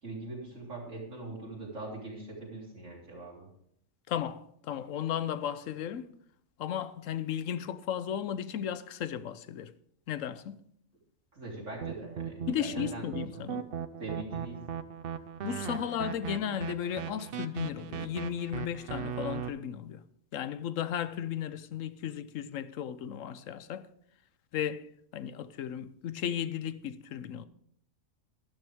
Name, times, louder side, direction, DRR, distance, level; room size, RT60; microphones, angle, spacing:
voice 1, 0.0-3.5 11.3-13.0 13.3-13.6 14.0-14.8, right 2 dB, 75° right, 4.1 m, -42 dB
voice 2, 4.1-6.1 6.6-9.7 10.1-10.6 12.5-13.6 15.4-20.0 20.3-23.9 24.5-27.5, left 9 dB, 85° left, 1.1 m, -35 dB
sound 1, 11.8-19.5, right 8 dB, 55° right, 0.8 m, -38 dB
12.5 x 12.0 x 3.6 m
omnidirectional pair, 1.3 m